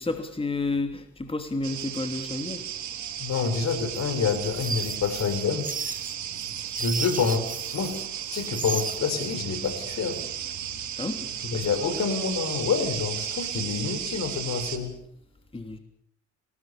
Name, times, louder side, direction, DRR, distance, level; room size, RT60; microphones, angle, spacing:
voice 1, 0.0-2.6 11.0-11.9 15.5-15.8, left 2 dB, 20° left, 6 dB, 3.0 m, -31 dB
sound 1, 1.6-14.8, right 10 dB, 70° right, 3.5 m, -34 dB
voice 2, 3.2-5.7 6.8-8.0 8.3-10.2 11.5-14.9, left 5 dB, 65° left, 9 dB, 5.6 m, -27 dB
sound 2, 4.0-8.0 8.3-9.3, right 5 dB, 25° right, 1.6 m, -34 dB
29.5 x 19.5 x 7.2 m, 0.68 s
cardioid pair, 90°, 30 cm